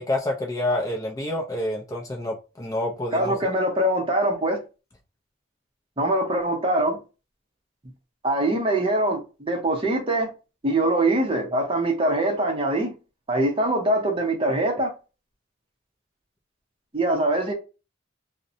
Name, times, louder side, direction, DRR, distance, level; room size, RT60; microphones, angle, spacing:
voice 1, 0.0-3.3, left 1 dB, 15° left, 0.4 m, -28 dB
voice 2, 3.1-4.6 6.0-7.0 8.2-10.3 10.6-12.9 13.3-14.9 16.9-17.5, right 1 dB, 25° right, 0.6 m, -23 dB
2.5 x 2.1 x 2.5 m
head